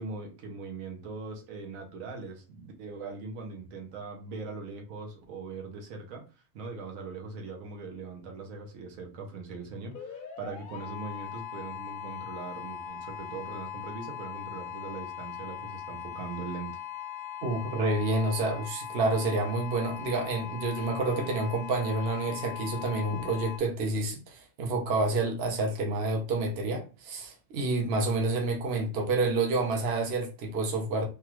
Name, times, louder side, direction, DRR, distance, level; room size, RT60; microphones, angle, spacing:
voice 1, 0.0-16.7, right 4 dB, 90° right, 1.2 m, -41 dB
sound 1, 9.9-23.6, left 9 dB, 55° left, 0.6 m, -40 dB
voice 2, 17.4-31.1, right 2 dB, 55° right, 0.9 m, -29 dB
3.4 x 2.3 x 2.9 m
omnidirectional pair, 1.4 m